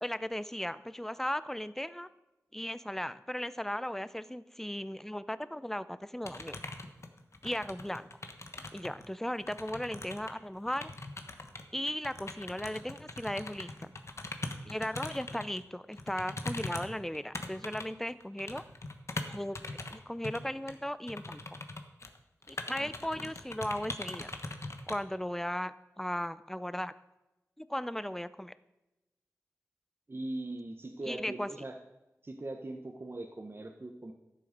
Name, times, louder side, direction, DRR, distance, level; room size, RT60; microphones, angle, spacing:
voice 1, 0.0-2.1 2.5-6.6 7.4-8.1 8.7-10.9 11.7-13.9 14.7-18.6 19.3-19.6 19.9-21.4 22.5-24.3 24.9-26.9 27.6-28.5 31.1-31.5, left 1 dB, 5° left, 15 dB, 0.6 m, -36 dB
sound 1, 6.2-9.1 9.3-15.6 15.9-20.0 20.2-20.4 20.7-20.8 21.1-22.2 22.4-25.0, left 2 dB, 55° left, 1.2 m, -41 dB
voice 2, 30.1-31.7 32.2-34.1, right 2 dB, 40° right, 3 dB, 1.0 m, -41 dB
12.5 x 7.6 x 5.2 m, 0.97 s
cardioid pair, 50°, 6 cm